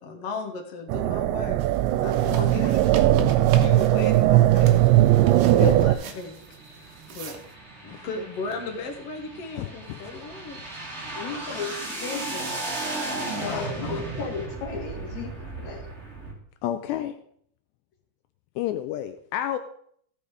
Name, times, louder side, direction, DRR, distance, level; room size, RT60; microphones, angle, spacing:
voice 1, 0.0-1.6 1.9-3.3 3.6-4.8 5.6-6.4 6.7-7.4 7.8-10.6, left 3 dB, 70° left, 3 dB, 1.5 m, -36 dB
sound 1, 0.9-6.0, right 14 dB, 85° right, 2.9 m, -19 dB
sound 2, 1.6-7.5, right 7 dB, 70° right, 2.1 m, -40 dB
voice 2, 2.2-2.8 11.1-12.6 13.4-15.9, left 5 dB, 45° left, -1 dB, 3.2 m, -35 dB
sound 3, 4.6-16.3, right 2 dB, 25° right, 1.5 m, -36 dB
voice 3, 9.6-10.0 11.1-11.2 13.4-14.0 16.6-17.1 18.6-19.6, left 11 dB, 85° left, 8 dB, 2.7 m, -30 dB
15.5 x 7.2 x 4.8 m, 0.65 s
omnidirectional pair, 5.2 m